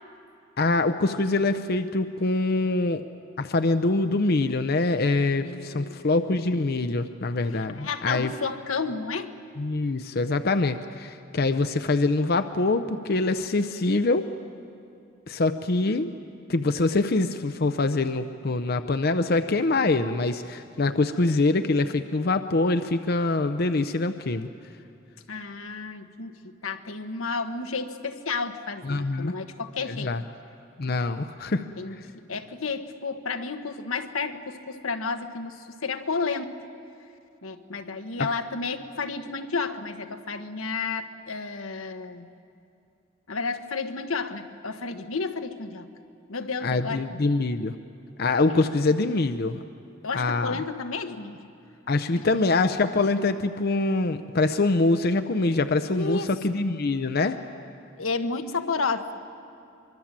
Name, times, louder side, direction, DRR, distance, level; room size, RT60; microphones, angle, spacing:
voice 1, 0.6-3.0 3.4-8.3 9.6-14.3 15.3-16.1 16.5-24.5 28.8-29.3 29.9-30.2 30.8-31.6 38.2-38.3 46.6-47.7 48.2-49.6 50.1-50.6 51.9-57.4, left 3 dB, 50° left, 9 dB, 0.7 m, -24 dB
voice 2, 5.3-6.0 7.5-9.3 25.3-30.1 31.8-36.5 37.4-42.3 43.3-45.9 46.3-47.0 48.5-48.6 50.0-51.4 55.9-56.3 58.0-59.1, left 4 dB, 90° left, 7 dB, 1.2 m, -31 dB
24.5 x 23.5 x 7.4 m, 2.6 s
head